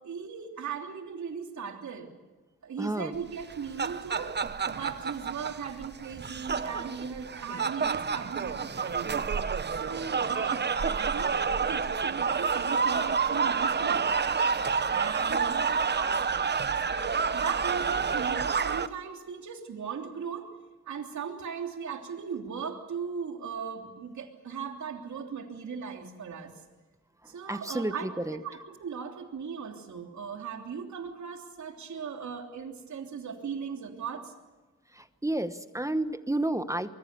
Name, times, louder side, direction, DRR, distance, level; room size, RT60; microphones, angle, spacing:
voice 1, 0.0-2.1 2.6-4.3 4.7-9.2 9.8-14.5 14.9-16.2 16.8-20.5 20.9-26.5 27.3-34.3, right 6 dB, 75° right, 3 dB, 3.2 m, -38 dB
voice 2, 2.8-3.1 27.5-28.4 34.9-36.9, right 1 dB, 10° right, 11 dB, 1.1 m, -31 dB
sound 1, 3.4-18.9, right 5 dB, 35° right, 0.9 m, -29 dB
25.0 x 22.5 x 6.8 m, 1.2 s
cardioid pair, 95°, 29 cm